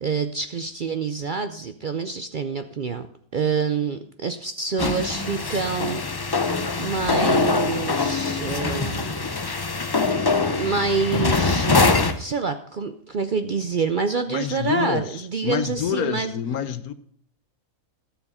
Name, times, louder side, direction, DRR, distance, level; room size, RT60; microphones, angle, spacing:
voice 1, 0.0-3.1 3.3-6.4 6.8-9.3 10.6-16.3, right 5 dB, 60° right, 0.5 m, -27 dB
sound 1, 4.8-12.2, left 4 dB, 40° left, 0.3 m, -23 dB
voice 2, 14.3-16.9, left 9 dB, 80° left, 1.2 m, -27 dB
12.5 x 7.1 x 5.5 m
omnidirectional pair, 1.5 m